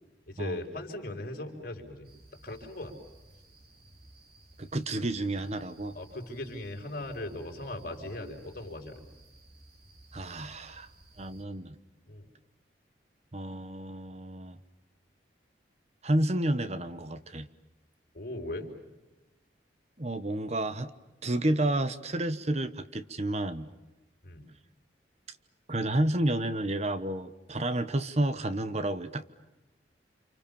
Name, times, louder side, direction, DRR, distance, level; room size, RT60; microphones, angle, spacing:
voice 1, 0.3-2.1 2.4-3.0 5.9-9.0 12.1-12.3 18.1-18.7 24.2-24.5, left 1 dB, 50° left, 3 dB, 5.1 m, -39 dB
sound 1, 2.0-11.4, right 1 dB, 55° right, 4.2 m, -57 dB
voice 2, 4.6-5.9 10.1-10.9 11.2-11.8 13.3-14.6 16.0-17.5 20.0-20.9 21.2-23.7 25.7-29.2, right 1 dB, 35° right, 12 dB, 1.1 m, -30 dB
30.0 x 27.5 x 7.2 m, 1.0 s
head